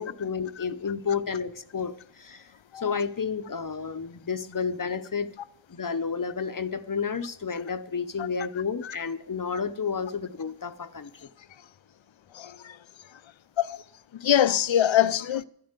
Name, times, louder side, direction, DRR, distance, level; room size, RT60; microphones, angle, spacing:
voice 1, 0.0-5.3 5.7-11.3, left 5 dB, 45° left, 0.7 m, -31 dB
voice 2, 12.3-12.8 13.6-13.8 14.2-15.4, left 10 dB, 85° left, 0.6 m, -23 dB
11.0 x 10.5 x 8.1 m
wide cardioid pair, 60°, 45 cm